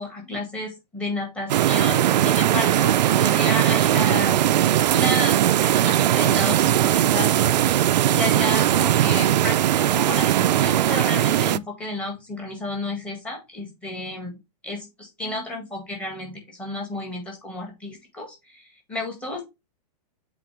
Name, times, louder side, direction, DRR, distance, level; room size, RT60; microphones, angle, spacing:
voice 1, 0.0-4.4 4.9-7.5 8.1-14.4 14.6-19.4, left 2 dB, 5° left, 0 dB, 1.7 m, -31 dB
sound 1, 1.5-11.6, right 12 dB, 85° right, 0.4 m, -19 dB
7.7 x 3.8 x 3.3 m, 0.22 s
hypercardioid pair, 170°, 21 cm